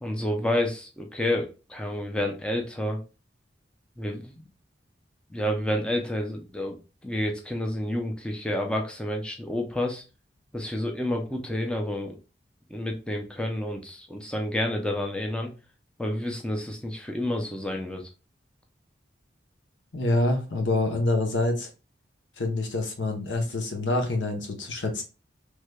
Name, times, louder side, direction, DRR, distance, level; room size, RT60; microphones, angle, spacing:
voice 1, 0.0-3.0 4.0-4.3 5.3-10.0 10.5-12.2 12.7-15.5 16.0-18.1, left 1 dB, 5° left, 2 dB, 0.5 m, -29 dB
voice 2, 19.9-21.7 22.4-25.0, left 2 dB, 90° left, 4 dB, 0.9 m, -26 dB
3.2 x 3.2 x 2.2 m, 0.31 s
head